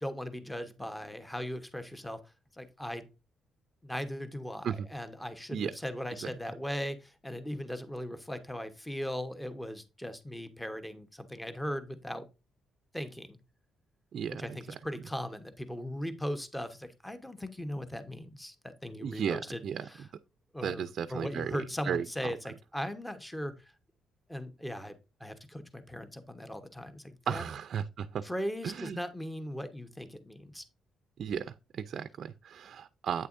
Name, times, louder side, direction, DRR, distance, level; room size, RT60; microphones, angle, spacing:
voice 1, 0.0-2.2 2.6-3.1 3.8-12.3 12.9-13.4 14.4-19.6 19.9-20.0 20.5-20.8 21.1-23.5 24.3-27.4 28.2-30.6, equal, 5° left, 1.1 m, -38 dB
voice 2, 14.1-14.8 19.0-20.1 20.6-22.3 27.3-28.2 28.6-29.0 31.2-33.3, right 8 dB, 60° right, 0.4 m, -35 dB
8.7 x 6.7 x 2.6 m
cardioid pair, 95°, 0 cm